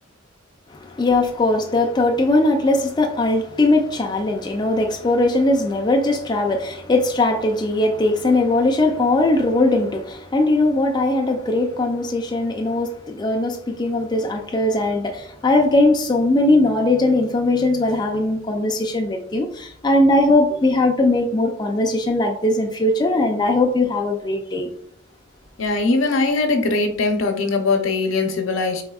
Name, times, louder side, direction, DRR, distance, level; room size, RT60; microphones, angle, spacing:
voice 1, 0.7-24.7, left 2 dB, 20° left, 0.3 m, -19 dB
voice 2, 25.6-28.8, left 3 dB, 80° left, 0.6 m, -21 dB
4.1 x 3.5 x 2.3 m
head